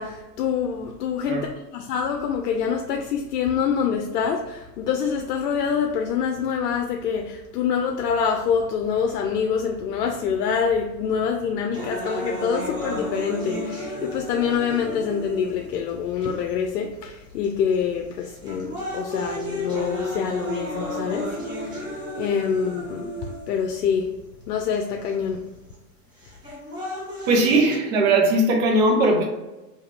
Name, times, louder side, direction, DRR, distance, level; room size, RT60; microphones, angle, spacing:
voice 1, 0.0-21.9 22.2-24.2 24.5-25.5, left 7 dB, 70° left, 0.6 m, -26 dB
sound 1, 11.7-15.8 16.5-16.6 17.4-17.7 18.2-23.7 24.7-24.8 26.2-27.7, equal, 10° right, 0.5 m, -32 dB
voice 2, 27.3-29.3, right 2 dB, 50° right, 1.0 m, -19 dB
3.5 x 2.8 x 3.3 m
hypercardioid pair, 130°, 49 cm